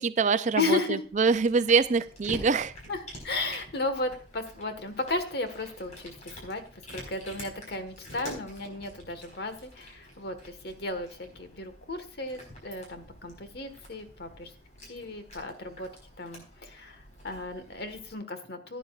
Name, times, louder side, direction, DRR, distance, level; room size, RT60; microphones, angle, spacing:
voice 1, 0.0-2.7, right 5 dB, 45° right, 0.5 m, -24 dB
voice 2, 0.6-1.0 2.9-3.0 3.2-14.5 14.9-15.9 16.2-18.8, left 2 dB, 60° left, 1.5 m, -34 dB
Cat, 1.0-18.1, equal, 45° left, 4.8 m, -47 dB
15.5 x 9.9 x 2.4 m
head